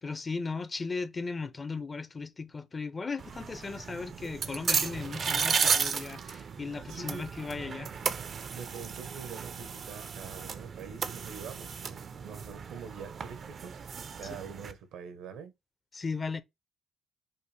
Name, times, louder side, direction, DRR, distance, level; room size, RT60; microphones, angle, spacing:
voice 1, 0.0-7.9 14.2-14.4 15.9-16.4, left 4 dB, 30° left, 0.5 m, -37 dB
sound 1, 3.2-14.7, right 6 dB, 50° right, 0.4 m, -34 dB
voice 2, 6.9-7.3 8.5-15.5, right 6 dB, 85° right, 0.9 m, -45 dB
5.4 x 2.1 x 3.2 m
cardioid pair, 90°, 0 cm